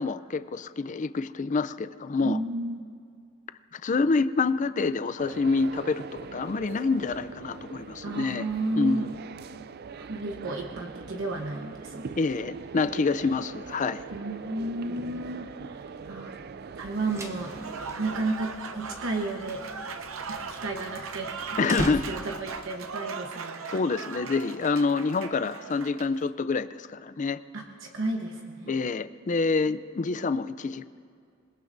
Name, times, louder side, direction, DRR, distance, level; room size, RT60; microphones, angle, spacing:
voice 1, 0.0-2.4 3.7-8.5 8.8-9.1 12.2-14.0 21.6-22.0 23.7-27.4 28.7-30.9, left 4 dB, 40° left, 13 dB, 0.4 m, -27 dB
voice 2, 2.2-2.8 8.0-9.1 9.9-12.0 14.1-16.3 16.8-17.5 18.0-19.6 20.3-21.3 21.6-23.6 27.5-28.7, right 2 dB, 65° right, 2 dB, 1.1 m, -32 dB
sound 1, 5.2-18.3, right 5 dB, 50° right, 0.4 m, -42 dB
sound 2, 16.9-22.6, right 1 dB, 15° right, 0.8 m, -40 dB
Applause / Crowd, 17.3-26.2, right 5 dB, 85° right, 0.7 m, -39 dB
26.5 x 21.0 x 2.6 m, 2.3 s
head